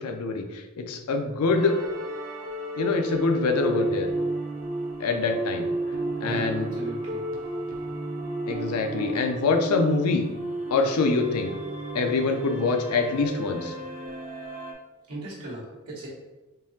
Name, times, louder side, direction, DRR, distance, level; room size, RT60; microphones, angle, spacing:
voice 1, 0.0-1.8 2.8-4.1 5.0-5.7 6.2-6.7 8.5-10.3 10.7-11.5 11.9-13.7, left 3 dB, 90° left, 4 dB, 0.5 m, -25 dB
sound 1, 1.5-14.7, right 2 dB, 40° right, 0.5 m, -33 dB
voice 2, 6.2-7.2 15.1-16.1, right 1 dB, 90° right, -6 dB, 1.1 m, -37 dB
3.7 x 2.8 x 2.7 m, 1.1 s
head